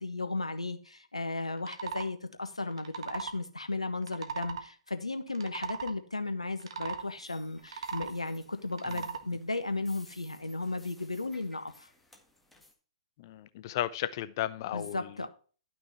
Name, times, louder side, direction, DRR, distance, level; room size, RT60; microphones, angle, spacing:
voice 1, 0.0-11.9 14.7-15.3, left 3 dB, 85° left, 1.3 m, -35 dB
sound 1, 1.6-2.1 2.7-3.4 4.0-4.6 5.3-5.9 6.6-7.0 7.6-8.2 8.7-9.2, right 6 dB, 60° right, 1.3 m, -38 dB
sound 2, 7.0-12.7, left 2 dB, 5° left, 1.8 m, -60 dB
voice 2, 13.2-15.1, left 12 dB, 40° left, 0.6 m, -34 dB
11.5 x 6.1 x 4.4 m
figure-of-eight pair, 115°, 3 cm